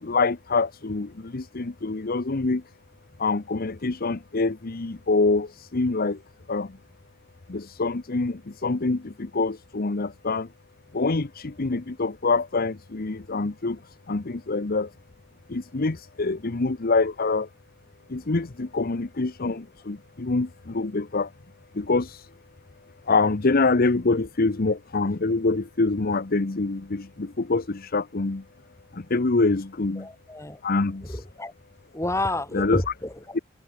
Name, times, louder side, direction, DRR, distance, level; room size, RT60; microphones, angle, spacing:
voice 1, 0.0-2.6 3.2-6.2 6.5-6.7 7.5-10.5 10.9-13.8 14.1-14.9 15.5-17.5 18.1-21.3 21.7-22.3 23.1-28.4 28.9-30.1 30.6-31.1 32.5-32.8 33.3-33.4, left 3 dB, 50° left, 0.9 m, -25 dB
voice 2, 30.0-30.6 31.0-31.5 31.9-33.4, left 1 dB, 15° left, 4.8 m, -30 dB
head